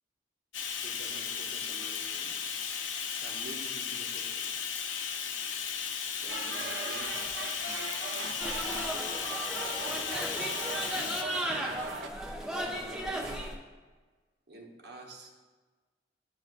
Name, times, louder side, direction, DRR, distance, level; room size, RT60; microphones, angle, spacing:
Bathtub (filling or washing), 0.5-11.2, left 7 dB, 85° left, 0.5 m, -35 dB
voice 1, 0.8-2.4 3.2-4.5 6.2-7.2 12.5-13.5 14.5-15.3, right 2 dB, 55° right, 1 dB, 1.0 m, -47 dB
sound 1, 6.3-12.1, right 4 dB, 85° right, 0.6 m, -39 dB
sound 2, 8.4-13.5, equal, 5° right, 0.6 m, -36 dB
11.0 x 4.3 x 2.5 m, 1.3 s
head